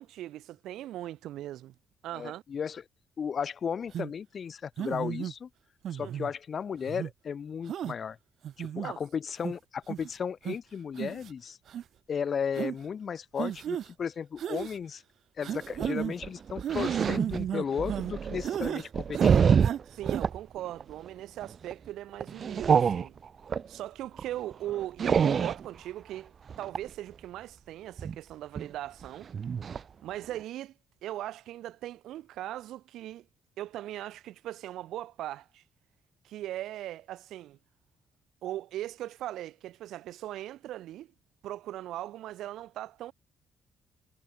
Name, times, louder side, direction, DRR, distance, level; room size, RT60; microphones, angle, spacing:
voice 1, 0.0-1.7 2.0-2.4 6.0-6.2 8.8-9.0 19.9-23.2 23.7-29.3 30.0-30.7 31.0-33.3 33.6-35.6 36.2-37.6 38.4-41.1 41.4-43.1, right 13 dB, 85° right, 4.2 m, -39 dB
voice 2, 2.1-2.8 3.2-5.5 5.9-8.2 8.6-11.6 12.1-15.0 15.4-19.5, left 7 dB, 50° left, 5.8 m, -35 dB
sound 1, 3.9-4.1 4.8-5.3 5.8-6.3 6.9-7.1 7.7-7.9 8.4-8.9 9.4-9.5 9.9-10.1 10.4-10.6 11.0-11.3 11.7-11.8 12.6-12.7 13.4-13.9 14.4-14.8 15.4-16.1 16.6-18.1 18.4-18.9 19.1-19.8 20.1-20.2, right 10 dB, 65° right, 2.5 m, -34 dB
sound 2, 15.6-20.4 20.8-21.1 21.4-21.7 22.2-23.7 24.2-24.3 24.5-25.7 26.5-26.9 28.0-28.2 28.6-28.7 29.0-29.1 29.3-29.8 30.2-30.4, right 7 dB, 50° right, 0.8 m, -26 dB
cardioid pair, 90°, 0 cm